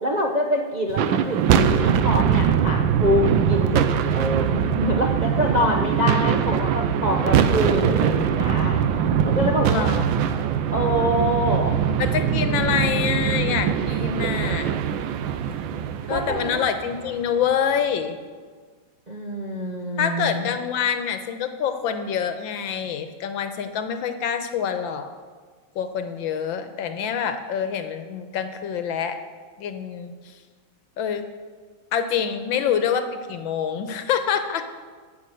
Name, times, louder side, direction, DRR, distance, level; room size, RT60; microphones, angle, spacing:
voice 1, 0.0-8.8 9.2-9.9 10.7-11.8 16.1-16.6 19.1-20.5, equal, 45° right, -1 dB, 0.5 m, -25 dB
sound 1, 0.9-17.3, right 8 dB, 85° right, 1.4 m, -22 dB
voice 2, 9.6-10.3 12.0-14.8 16.1-18.2 20.0-25.1 25.7-29.2 29.6-30.1 31.0-31.2 31.9-34.7, left 7 dB, 90° left, 8 dB, 1.6 m, -26 dB
12.0 x 7.0 x 7.7 m, 1.5 s
omnidirectional pair, 2.1 m